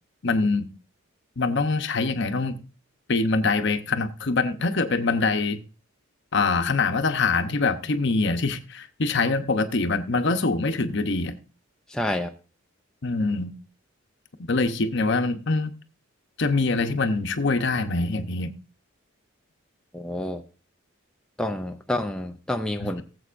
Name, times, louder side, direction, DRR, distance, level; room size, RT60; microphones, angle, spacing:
voice 1, 0.2-0.7 1.4-2.6 3.1-5.6 6.3-11.4 13.0-13.5 14.5-15.7 16.4-18.5 22.8-23.0, left 3 dB, 55° left, 0.9 m, -24 dB
voice 2, 11.9-12.3 19.9-20.4 21.4-23.0, left 1 dB, 5° left, 0.4 m, -28 dB
18.5 x 7.8 x 2.5 m
head